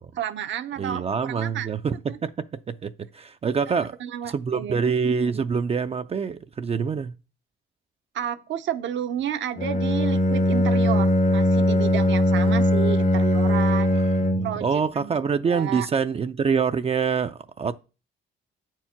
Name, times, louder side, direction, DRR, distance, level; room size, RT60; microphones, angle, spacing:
voice 1, 0.2-2.2 3.7-4.9 8.1-14.0 14.4-14.7 14.9-15.1 15.5-15.9, right 10 dB, 70° right, 0.7 m, -31 dB
voice 2, 0.8-4.0 4.3-7.1 13.9-14.0 14.3-17.7, right 6 dB, 30° right, 0.4 m, -26 dB
Bowed string instrument, 9.6-14.7, left 1 dB, 40° left, 0.7 m, -20 dB
8.4 x 4.5 x 5.7 m
cardioid pair, 90°, 20 cm